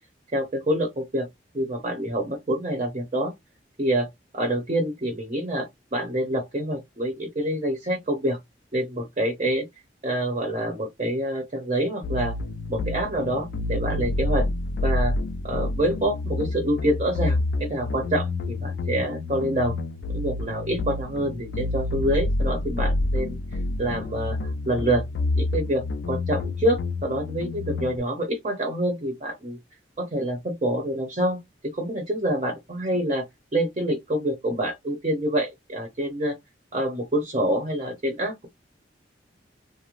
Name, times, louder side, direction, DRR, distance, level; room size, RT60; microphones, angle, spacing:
voice 1, 0.3-1.3 1.5-3.3 3.8-4.1 4.3-8.4 8.7-9.7 10.0-12.4 12.7-14.5 14.8-15.1 15.4-19.8 20.1-25.1 25.3-29.6 30.0-33.2 33.5-36.4 36.7-38.5, right 1 dB, 35° right, 0.7 m, -26 dB
sound 1, 12.0-28.0, left 2 dB, 70° left, 0.3 m, -28 dB
2.5 x 2.0 x 2.9 m
head